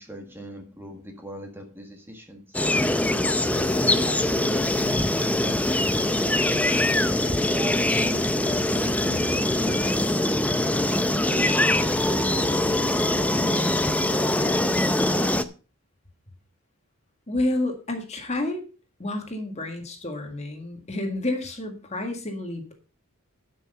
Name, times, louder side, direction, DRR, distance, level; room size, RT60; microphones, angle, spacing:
voice 1, 0.0-2.6 3.5-5.5 6.1-10.0 11.2-15.4, equal, 10° right, 3 dB, 1.7 m, -39 dB
sound 1, 2.5-15.4, left 1 dB, 5° left, 0.5 m, -23 dB
voice 2, 17.3-18.6 19.0-22.7, left 2 dB, 30° left, 4 dB, 1.8 m, -29 dB
11.5 x 6.2 x 5.5 m, 0.35 s
head